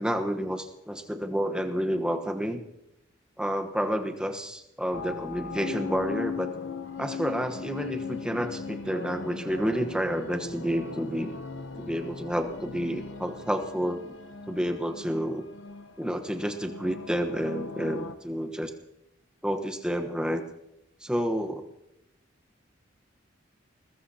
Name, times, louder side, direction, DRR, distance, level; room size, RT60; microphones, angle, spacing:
voice 1, 0.0-2.6 3.4-6.5 7.0-11.3 11.8-14.1 14.5-15.4 16.0-18.7 19.4-20.4 21.0-21.7, equal, 5° right, 6 dB, 1.1 m, -30 dB
sound 1, 4.9-18.1, left 4 dB, 70° left, 0.9 m, -38 dB
22.0 x 19.5 x 2.9 m, 0.84 s
head